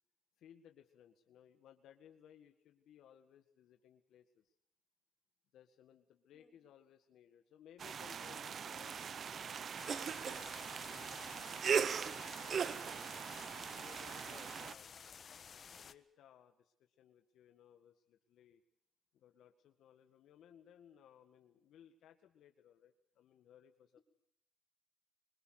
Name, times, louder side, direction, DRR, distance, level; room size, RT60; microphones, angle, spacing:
voice 1, 0.4-4.4 5.5-9.7 10.2-13.1 13.7-14.9 15.8-18.6 19.1-24.0, left 9 dB, 80° left, 6 dB, 1.9 m, -62 dB
sound 1, 7.8-14.7, right 7 dB, 55° right, 1.0 m, -39 dB
sound 2, 9.8-15.9, left 6 dB, 50° left, 1.5 m, -54 dB
voice 2, 14.2-14.9, left 4 dB, 35° left, 5 dB, 4.6 m, -63 dB
25.5 x 23.0 x 6.7 m, 0.70 s
cardioid pair, 90°, 0 cm